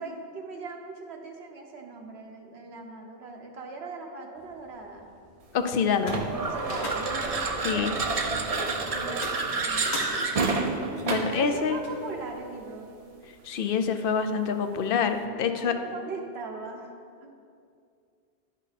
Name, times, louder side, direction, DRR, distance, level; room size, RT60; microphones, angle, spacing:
voice 1, 0.0-5.1 6.3-10.4 11.3-12.9 15.3-16.9, right 3 dB, 75° right, 2 dB, 1.2 m, -40 dB
sound 1, 4.4-12.4, left 1 dB, 40° left, 1.3 m, -43 dB
voice 2, 5.5-6.2 7.6-7.9 10.2-10.3 11.0-11.8 13.4-15.7, left 6 dB, 65° left, 7 dB, 0.7 m, -26 dB
sound 2, 6.0-11.4, right 3 dB, 40° right, 0.6 m, -29 dB
10.5 x 5.5 x 4.1 m, 2.4 s
omnidirectional pair, 1.1 m